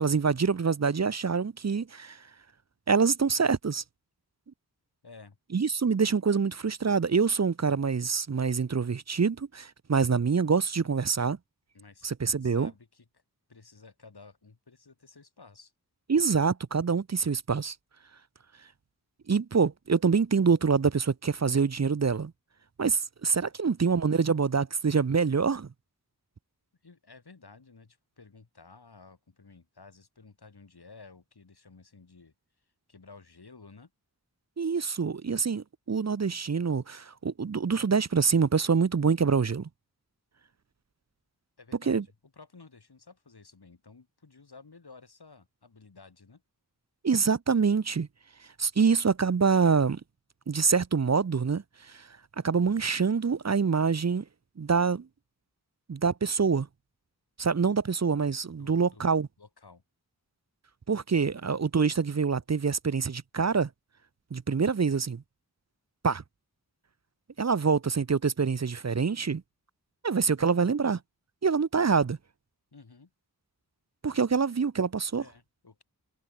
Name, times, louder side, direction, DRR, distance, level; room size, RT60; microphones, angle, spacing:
voice 1, 0.0-2.2 2.9-3.8 5.5-11.4 12.0-12.7 16.1-17.8 19.3-22.3 22.8-25.7 34.6-39.7 41.9-42.0 47.0-48.1 48.6-50.0 50.5-52.1 52.4-54.2 54.6-55.1 55.9-56.7 57.4-59.3 60.9-63.7 64.3-65.2 66.0-66.2 67.4-69.4 70.0-71.0 71.4-72.2 74.0-75.2, right 5 dB, 45° right, 0.7 m, -25 dB
voice 2, 5.0-5.4 11.7-12.1 12.4-13.2 13.5-15.7 26.8-33.9 41.6-46.4 58.6-59.0 59.4-59.8 61.1-61.2 72.7-73.1 75.2-75.8, left 4 dB, 85° left, 4.6 m, -53 dB
wide cardioid pair, 45°, 38 cm